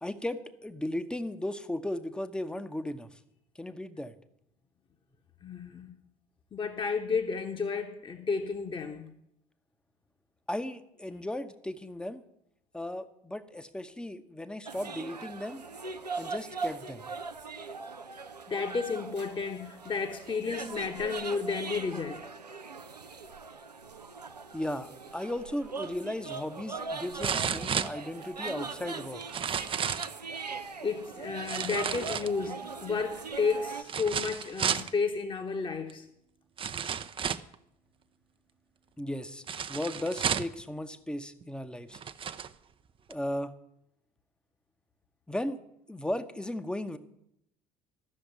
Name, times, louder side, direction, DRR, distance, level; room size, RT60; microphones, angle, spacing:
voice 1, 0.0-3.2 3.6-4.1 10.5-12.2 12.7-15.6 16.2-17.1 24.5-29.2 39.0-39.4 39.7-42.0 43.1-43.5 45.3-45.6 45.9-47.0, left 1 dB, 5° left, 0.9 m, -36 dB
voice 2, 5.4-5.9 6.5-9.1 18.5-22.3 30.3-36.1, left 5 dB, 25° left, 1.2 m, -32 dB
sound 1, 14.7-33.8, right 4 dB, 85° right, 0.6 m, -40 dB
sound 2, 25.8-25.9 27.2-28.5 29.2-30.2 31.4-32.6 33.8-34.9 35.9-36.0 36.6-37.5 39.5-40.6 41.4-41.5 41.9-42.5 43.1-43.2, right 7 dB, 25° right, 0.6 m, -32 dB
13.0 x 6.9 x 9.3 m
figure-of-eight pair, 60°, 20 cm